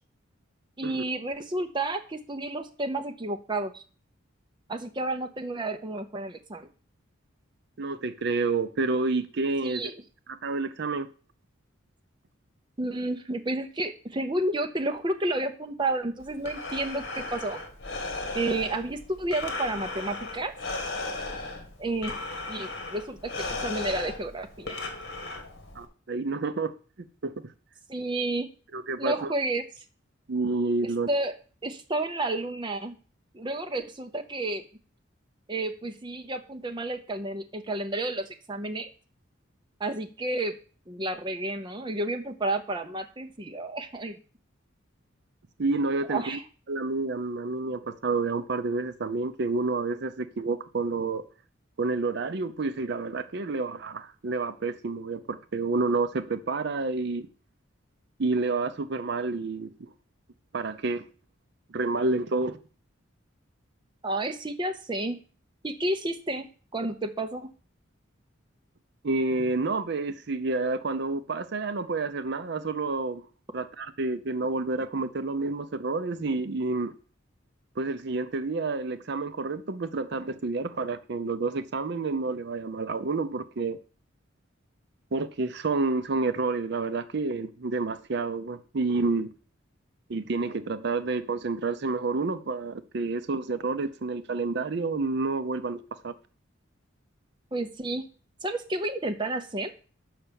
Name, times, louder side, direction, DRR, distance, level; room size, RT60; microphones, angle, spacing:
voice 1, 0.8-3.8 4.7-6.7 9.6-9.9 12.8-17.6 18.3-20.5 21.8-22.1 22.5-24.8 27.9-28.5 29.0-29.6 30.8-31.3 31.6-33.0 33.3-34.6 35.5-38.9 39.8-40.5 40.9-44.2 46.1-46.4 64.0-65.2 65.6-66.5 66.7-67.5 97.5-98.0 98.4-99.7, right 2 dB, 25° right, 0.7 m, -31 dB
voice 2, 7.8-9.9 10.3-11.1 25.8-26.7 27.2-27.3 28.7-29.3 30.3-31.1 45.6-46.4 46.7-51.2 51.8-57.3 58.2-59.9 60.5-61.0 61.7-62.6 69.0-73.2 73.5-76.9 77.8-83.8 85.1-89.3 90.1-96.1, right 3 dB, 55° right, 0.5 m, -29 dB
Breathing, 16.2-25.8, left 2 dB, 55° left, 1.6 m, -36 dB
5.9 x 5.6 x 6.9 m
head